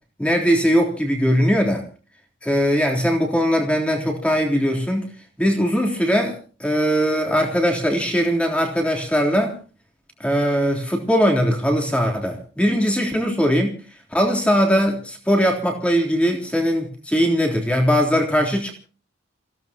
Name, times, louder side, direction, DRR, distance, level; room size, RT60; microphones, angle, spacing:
voice 1, 0.2-1.8 2.4-5.1 5.4-9.5 10.2-13.7 14.1-18.7, equal, 5° left, 1 dB, 3.5 m, -20 dB
29.0 x 16.5 x 3.0 m, 0.37 s
head